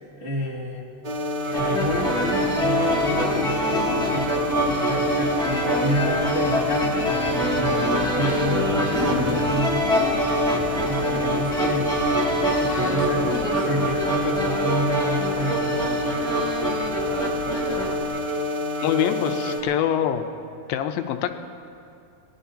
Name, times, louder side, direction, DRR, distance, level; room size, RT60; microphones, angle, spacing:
voice 1, 0.2-0.8 1.5-7.1 7.5-10.4 10.8-11.9 12.6-16.2, equal, 20° right, -6 dB, 1.1 m, -29 dB
sound 1, 1.0-19.6, left 1 dB, 60° right, 1.1 m, -28 dB
sound 2, 1.5-18.0, equal, ahead, 2.7 m, -25 dB
voice 2, 18.8-20.3 20.7-21.3, left 10 dB, 85° left, 7 dB, 2.5 m, -24 dB
26.5 x 18.5 x 2.9 m, 2.5 s
omnidirectional pair, 4.2 m